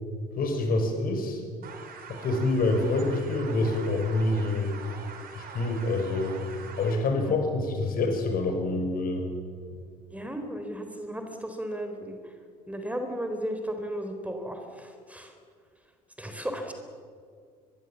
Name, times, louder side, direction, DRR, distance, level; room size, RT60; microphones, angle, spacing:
voice 1, 0.4-1.4 2.1-4.7 5.3-6.4 6.8-9.3, left 2 dB, 45° left, 5 dB, 5.5 m, -26 dB
sound 1, 1.6-6.9, right 6 dB, 45° right, 4.7 m, -44 dB
voice 2, 10.1-12.2 12.7-15.3 16.2-16.7, equal, 5° right, 5 dB, 3.9 m, -35 dB
24.5 x 22.5 x 7.3 m, 2.1 s
figure-of-eight pair, 55°, 21 cm